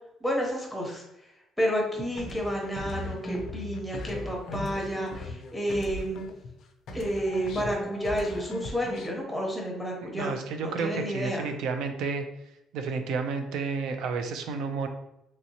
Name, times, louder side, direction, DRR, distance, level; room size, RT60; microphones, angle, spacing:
voice 1, 0.2-1.0 1.6-6.2 6.9-11.5, equal, 5° left, -1 dB, 0.7 m, -30 dB
sound 1, 2.2-6.6 6.9-9.2, left 1 dB, 55° left, 0.3 m, -38 dB
voice 2, 10.0-12.2 12.7-14.9, right 4 dB, 75° right, 6 dB, 0.4 m, -31 dB
3.0 x 2.7 x 2.8 m, 0.85 s
cardioid pair, 160°, 0 cm